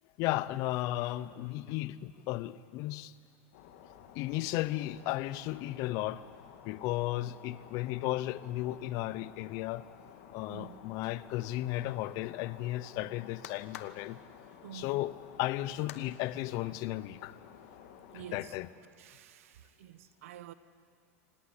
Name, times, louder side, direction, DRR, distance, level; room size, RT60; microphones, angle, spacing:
voice 1, 0.2-3.1 4.1-6.2 6.6-9.9 10.3-14.2 14.7-17.4 18.1-18.7, left 16 dB, 50° left, 0.8 m, -34 dB
sound 1, 3.5-18.7, left 8 dB, 70° left, 2.3 m, -53 dB
sound 2, 10.9-16.1, left 11 dB, 90° left, 1.3 m, -53 dB
voice 2, 14.6-14.9 18.1-18.5 19.0-20.5, right 12 dB, 85° right, 1.2 m, -49 dB
25.0 x 18.5 x 9.9 m
supercardioid pair, 140°, 7 cm